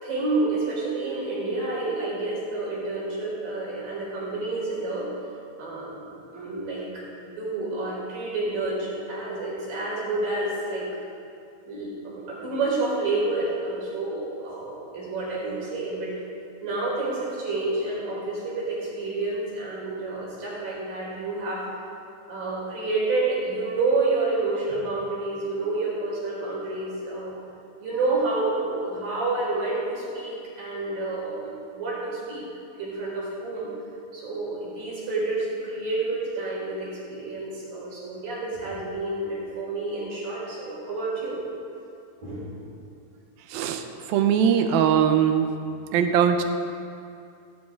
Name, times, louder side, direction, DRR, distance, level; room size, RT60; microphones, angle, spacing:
voice 1, 0.0-5.1 5.6-6.0 6.3-10.9 11.7-16.1 16.6-21.7 22.3-27.3 27.8-32.4 32.8-33.7 34.1-41.4 42.2-42.5, right 3 dB, 70° right, -5 dB, 6.0 m, -29 dB
voice 2, 43.5-43.8 44.1-45.5 45.9-46.4, right 8 dB, 90° right, 6 dB, 2.7 m, -20 dB
16.5 x 16.0 x 3.8 m, 2.5 s
omnidirectional pair, 4.2 m